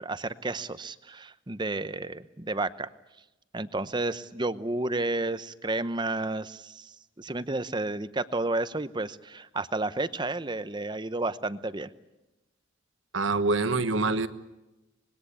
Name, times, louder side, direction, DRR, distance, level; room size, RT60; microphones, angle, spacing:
voice 1, 0.0-2.9 3.5-11.9, right 2 dB, 20° right, 14 dB, 0.8 m, -31 dB
voice 2, 13.1-14.3, right 3 dB, 75° right, 11 dB, 1.4 m, -25 dB
25.5 x 21.0 x 8.7 m, 1.0 s
head